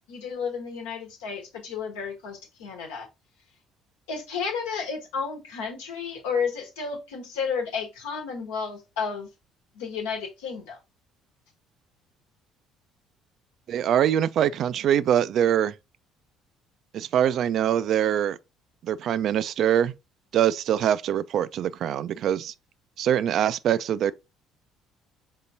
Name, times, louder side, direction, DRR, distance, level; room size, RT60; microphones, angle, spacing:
voice 1, 0.1-3.1 4.1-9.3 9.7-10.8, left 5 dB, 75° left, 1.1 m, -32 dB
voice 2, 13.7-15.7 16.9-18.4 18.8-19.9 20.3-22.5 23.0-24.1, right 10 dB, 55° right, 0.3 m, -23 dB
5.5 x 3.6 x 2.6 m
hypercardioid pair, 55°, 0 cm